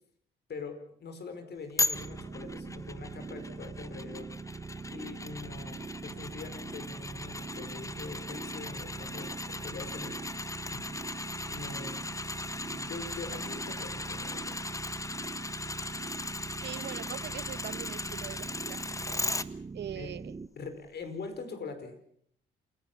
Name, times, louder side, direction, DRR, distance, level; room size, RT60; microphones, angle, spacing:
voice 1, 0.5-4.3 4.9-10.2 10.6-12.1 12.6-14.6 19.9-20.2 20.6-21.9, left 4 dB, 55° left, 8 dB, 5.1 m, -43 dB
sound 1, 1.8-19.5 19.9-20.0, left 2 dB, 15° left, 1.0 m, -38 dB
sound 2, 1.9-20.5, right 4 dB, 25° right, 0.8 m, -42 dB
voice 2, 16.6-18.8 19.1-19.2 19.7-20.4, right 10 dB, 60° right, 17 dB, 1.0 m, -42 dB
28.0 x 16.5 x 7.4 m, 0.66 s
cardioid pair, 90°, 20 cm